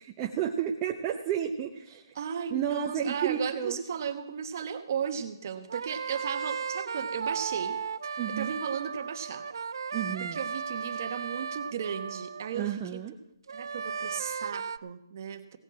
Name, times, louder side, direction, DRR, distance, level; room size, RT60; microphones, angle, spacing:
voice 1, 0.0-2.1 2.5-3.8 8.2-8.5 9.9-10.4 12.5-13.1, right 9 dB, 20° right, 1 dB, 0.7 m, -32 dB
voice 2, 2.1-9.4 10.2-13.0 13.5-15.6, right 7 dB, 40° right, 8 dB, 1.2 m, -35 dB
sound 1, 5.6-12.8 13.5-14.8, right 6 dB, 70° right, 0.4 m, -35 dB
17.0 x 6.6 x 7.5 m, 0.84 s
hypercardioid pair, 165°, 2 cm